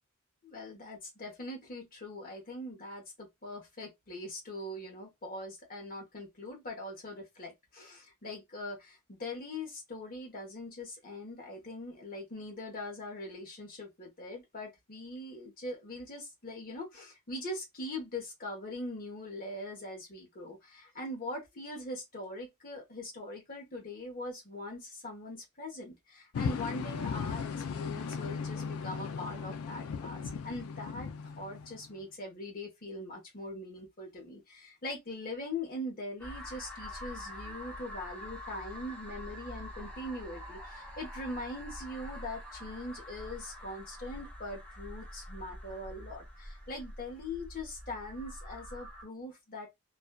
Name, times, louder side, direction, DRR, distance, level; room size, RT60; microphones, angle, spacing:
voice 1, 0.4-31.1 31.4-49.7, left 1 dB, 45° left, 1.0 m, -42 dB
sound 1, 26.3-32.0, left 6 dB, 90° left, 0.4 m, -37 dB
sound 2, 36.2-49.0, equal, 5° left, 0.8 m, -45 dB
2.5 x 2.3 x 2.2 m
head